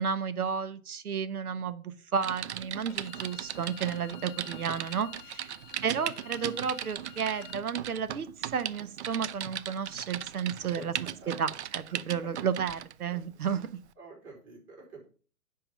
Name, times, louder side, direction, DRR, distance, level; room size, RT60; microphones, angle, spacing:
voice 1, 0.0-5.5 5.8-10.9 11.3-13.7, right 7 dB, 75° right, 14 dB, 0.9 m, -32 dB
Typing, 2.2-12.9 13.5-13.7, right 11 dB, 50° right, 0.5 m, -38 dB
Bowed string instrument, 2.9-7.6, left 14 dB, 25° left, 1.0 m, -51 dB
voice 2, 10.5-11.5 11.9-12.0 13.1-13.2 14.0-15.1, right 3 dB, 25° right, -3 dB, 4.4 m, -49 dB
9.9 x 3.8 x 5.3 m, 0.39 s
figure-of-eight pair, 120°, 45 cm